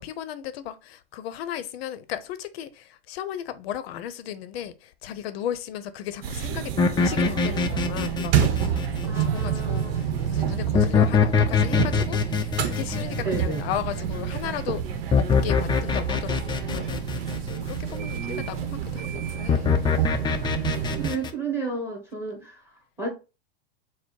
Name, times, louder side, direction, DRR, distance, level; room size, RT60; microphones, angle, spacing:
voice 1, 0.0-14.8 15.2-19.7 20.7-21.0, left 10 dB, 70° left, 0.6 m, -36 dB
sound 1, 6.2-21.1, right 8 dB, 65° right, 0.8 m, -28 dB
sound 2, 6.8-9.6 10.7-14.2 15.1-17.8 19.5-21.3, left 5 dB, 15° left, 0.4 m, -24 dB
voice 2, 9.1-10.2 13.2-13.7 21.0-22.6 23.0-23.1, right 3 dB, 5° right, 1.7 m, -32 dB
4.4 x 2.0 x 4.3 m
hypercardioid pair, 110°, 31 cm